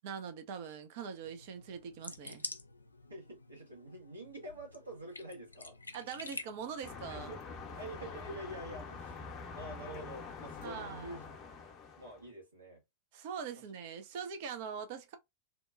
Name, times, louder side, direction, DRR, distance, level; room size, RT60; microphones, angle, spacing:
voice 1, 0.0-2.4 5.9-7.3 10.6-11.2 13.1-15.2, right 7 dB, 50° right, 0.5 m, -42 dB
sound 1, 1.2-8.8, left 3 dB, 80° left, 0.3 m, -49 dB
voice 2, 3.1-5.8 7.1-7.4 7.8-11.3 12.0-12.8, right 1 dB, 80° right, 1.4 m, -47 dB
sound 2, 6.8-12.3, left 5 dB, 35° left, 0.7 m, -46 dB
2.8 x 2.1 x 2.4 m
figure-of-eight pair, 90°, 0 cm